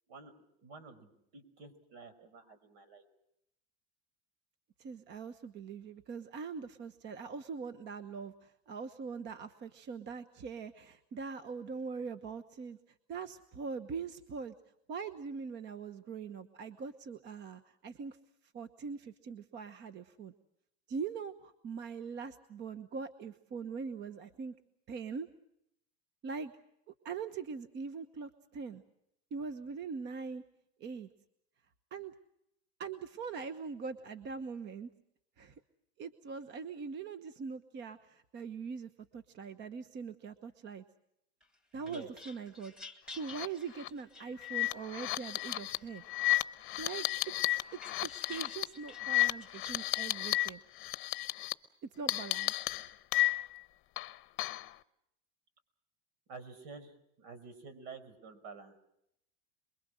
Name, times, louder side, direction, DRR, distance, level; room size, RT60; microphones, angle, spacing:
voice 1, 0.6-3.1 41.7-42.1 56.3-58.8, right 4 dB, 65° right, 12 dB, 5.3 m, -50 dB
voice 2, 4.8-12.8 13.1-14.5 14.9-18.2 18.5-20.3 20.9-24.5 24.9-25.3 26.2-26.5 27.0-28.8 29.3-30.4 30.8-31.1 31.9-32.1 32.8-34.9 35.4-35.5 36.0-40.8 41.7-42.7 43.1-46.0 46.8-47.1 47.7-50.6 52.0-52.5, right 5 dB, 30° right, 11 dB, 1.1 m, -42 dB
sound 1, 41.4-45.0 45.4-46.3 46.7-49.8, left 2 dB, ahead, 2.1 m, -53 dB
sound 2, 43.2-43.5 43.8-43.9 44.4-50.5 50.8-51.5 52.1-53.6 54.0-54.7, left 17 dB, 35° left, 0.9 m, -33 dB
28.0 x 22.5 x 6.4 m, 0.78 s
supercardioid pair, 150°, 34 cm